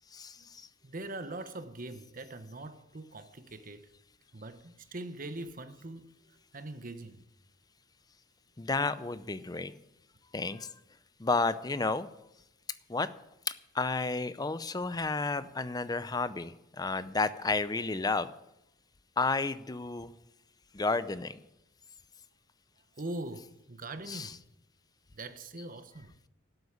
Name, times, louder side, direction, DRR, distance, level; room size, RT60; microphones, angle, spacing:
voice 1, 0.1-0.7 8.6-9.7 10.3-10.7 11.2-12.1 12.9-13.1 13.5-18.3 19.2-20.1 20.7-21.4 24.0-24.3, left 3 dB, 20° left, 0.6 m, -31 dB
voice 2, 0.8-3.9 4.3-6.1 6.5-7.2 23.0-24.4 25.1-26.1, right 2 dB, 45° right, 1.0 m, -42 dB
12.5 x 8.0 x 8.5 m
head